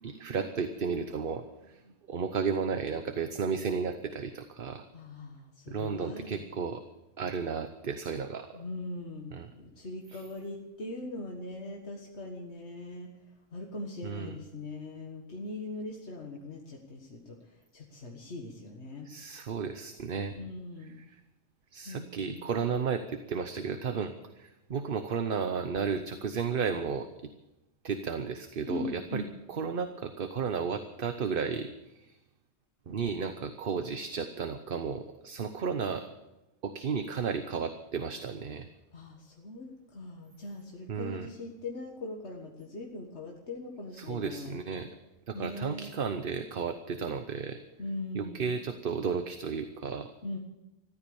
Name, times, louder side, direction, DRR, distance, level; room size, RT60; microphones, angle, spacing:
voice 1, 0.0-1.8 2.1-4.8 5.7-6.8 7.2-8.5 9.3-9.5 10.1-10.2 14.0-14.4 19.0-20.4 20.8-21.2 21.7-27.1 27.8-29.2 29.5-32.2 32.9-36.1 36.6-38.7 40.9-41.3 43.9-44.9 45.3-47.6 48.1-50.1, right 6 dB, 55° right, 8 dB, 1.0 m, -33 dB
voice 2, 4.9-6.4 8.5-13.1 13.5-17.4 17.7-19.1 20.4-20.9 21.9-22.5 28.7-29.3 38.9-44.5 45.3-45.9 47.8-48.5 50.2-50.4, left 2 dB, 85° left, 0 dB, 1.9 m, -41 dB
15.0 x 12.5 x 7.0 m, 0.97 s
omnidirectional pair, 1.1 m